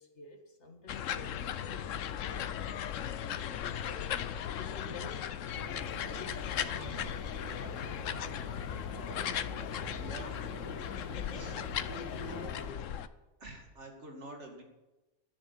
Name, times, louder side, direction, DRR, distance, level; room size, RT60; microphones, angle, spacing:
voice 1, 0.0-4.1 4.5-5.8 6.2-7.2, left 2 dB, 65° left, 4 dB, 2.1 m, -51 dB
sound 1, 0.9-13.1, left 9 dB, 90° left, 1.1 m, -37 dB
sound 2, 5.5-12.7, left 1 dB, 20° right, 4.7 m, -45 dB
voice 2, 9.9-10.4 11.3-11.6 13.4-14.6, right 1 dB, 65° right, 2 dB, 2.8 m, -47 dB
11.5 x 10.0 x 8.5 m, 1.1 s
omnidirectional pair, 1.3 m